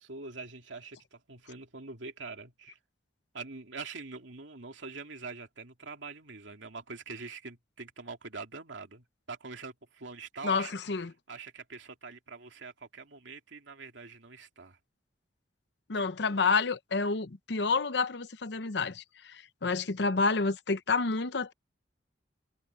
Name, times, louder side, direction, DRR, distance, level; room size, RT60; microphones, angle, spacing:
voice 1, 0.0-2.8 3.3-10.7 11.3-14.8 15.9-16.1, right 4 dB, 80° right, 2.6 m, -44 dB
voice 2, 10.4-11.1 15.9-21.5, left 4 dB, 65° left, 0.8 m, -29 dB
head